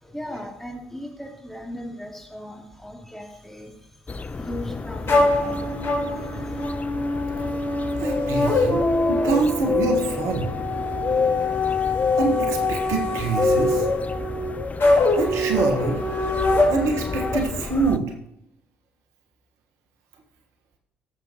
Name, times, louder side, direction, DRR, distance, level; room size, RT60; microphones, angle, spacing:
voice 1, 0.0-3.9 4.4-5.7 6.1-6.6, equal, 5° left, -1 dB, 3.3 m, -37 dB
sound 1, 4.1-18.0, left 5 dB, 25° left, 0.5 m, -29 dB
sound 2, 5.1-17.4, left 2 dB, 45° left, 4.2 m, -24 dB
voice 2, 8.0-8.8 9.1-10.5 12.1-13.9 15.1-16.0 16.7-18.0, right 4 dB, 65° right, 3 dB, 1.5 m, -25 dB
15.0 x 7.5 x 3.1 m, 0.80 s
hypercardioid pair, 50°, 6 cm